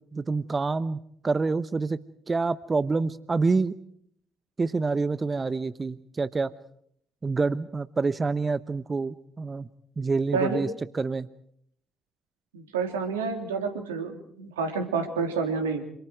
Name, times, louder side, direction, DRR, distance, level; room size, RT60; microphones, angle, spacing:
voice 1, 0.1-2.0 2.3-3.7 4.6-6.5 7.2-9.7 10.0-10.7 10.9-11.3, right 4 dB, 30° right, 16 dB, 0.9 m, -27 dB
voice 2, 10.3-10.6 12.5-15.8, right 5 dB, 80° right, 6 dB, 3.3 m, -29 dB
27.5 x 27.0 x 4.7 m, 0.67 s
figure-of-eight pair, 45°, 0 cm